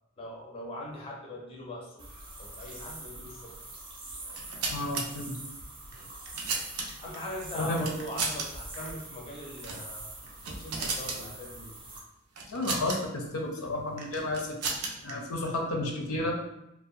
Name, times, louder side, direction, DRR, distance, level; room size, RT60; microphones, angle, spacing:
voice 1, 0.2-3.6 7.0-10.1 10.4-11.7, left 1 dB, 25° left, -2 dB, 0.4 m, -41 dB
sound 1, 2.0-12.0, right 2 dB, 25° right, 0.5 m, -44 dB
sound 2, 4.2-5.0 5.9-7.2 7.8-8.5 8.7-8.9 9.6-9.9 10.2-11.2 12.4-13.0 14.0-15.1, right 4 dB, 85° right, 0.4 m, -34 dB
voice 2, 4.7-5.4 7.5-7.9 12.5-16.4, left 1 dB, 85° left, 1 dB, 0.5 m, -32 dB
2.4 x 2.1 x 2.6 m, 0.88 s
head